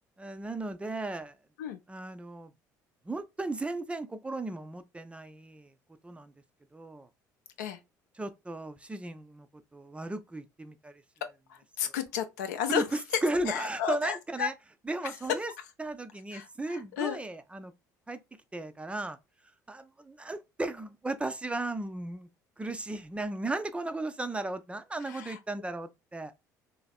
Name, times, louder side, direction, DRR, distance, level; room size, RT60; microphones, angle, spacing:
voice 1, 0.2-1.4 1.9-2.5 3.0-5.7 6.0-6.3 6.7-7.1 8.1-9.5 9.7-11.0 11.8-11.9 12.7-14.5 14.9-15.5 15.8-17.7 18.1-18.2 18.5-19.2 19.7-22.3 22.6-26.3, right 2 dB, 10° right, 0.4 m, -35 dB
voice 2, 11.5-12.9 13.5-14.5 16.3-17.2 25.1-25.4, left 9 dB, 70° left, 0.5 m, -33 dB
3.3 x 2.4 x 2.2 m
figure-of-eight pair, 55°, 10 cm